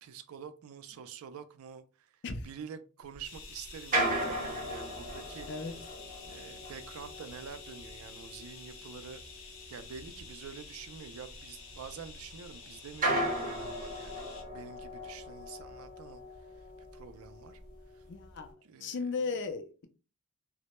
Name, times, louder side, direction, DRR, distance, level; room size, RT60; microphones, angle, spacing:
voice 1, 0.0-2.1 2.4-5.5 6.2-9.2 9.7-16.2 16.6-16.7 16.9-17.6 17.9-18.0 18.6-19.2, right 6 dB, 75° right, 0.3 m, -47 dB
sound 1, 3.1-12.5 12.9-18.5, right 1 dB, 40° right, 0.7 m, -38 dB
sound 2, 3.2-14.4, left 5 dB, 75° left, 0.7 m, -50 dB
voice 2, 18.1-18.5 18.8-19.9, left 4 dB, 55° left, 0.3 m, -36 dB
2.1 x 2.0 x 2.9 m
head